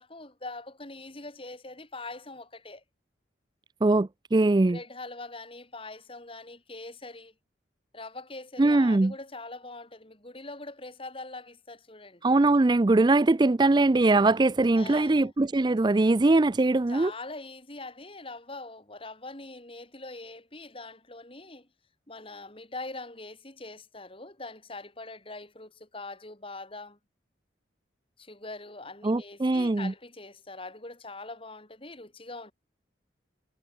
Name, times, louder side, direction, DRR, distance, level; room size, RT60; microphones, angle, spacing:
voice 1, 0.0-2.8 4.7-7.3 7.9-12.2 14.8-15.3 16.9-21.7 22.1-27.0 28.2-32.5, left 2 dB, 30° left, 4.0 m, -43 dB
voice 2, 3.8-4.8 8.6-9.1 12.2-17.1 29.0-29.9, right 2 dB, 25° right, 0.4 m, -22 dB
head